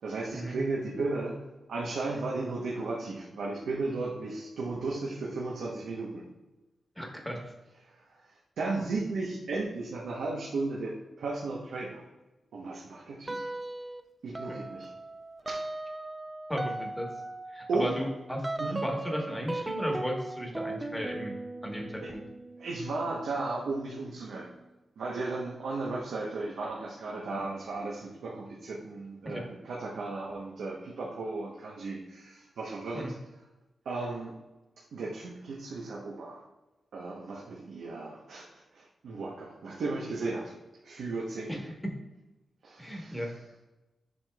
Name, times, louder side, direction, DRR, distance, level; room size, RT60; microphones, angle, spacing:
voice 1, 0.0-1.4 1.7-6.2 7.8-12.0 12.5-13.4 14.2-14.9 15.5-15.6 17.7-18.0 18.6-18.8 22.0-22.1 22.6-24.5 25.0-33.1 33.8-34.3 34.9-36.4 36.9-40.5 40.8-41.6 42.6-43.3, right 3 dB, 90° right, -3 dB, 0.9 m, -35 dB
voice 2, 7.0-7.4 14.5-14.6 16.5-17.1 17.5-21.3 21.6-22.2 29.2-29.4 32.9-33.1 41.5-41.6 42.8-43.3, equal, 5° left, 1 dB, 1.3 m, -35 dB
sound 1, 13.3-14.0 14.4-24.7, right 2 dB, 20° right, 0.4 m, -39 dB
7.5 x 5.8 x 2.3 m, 1.1 s
wide cardioid pair, 110°, 0 cm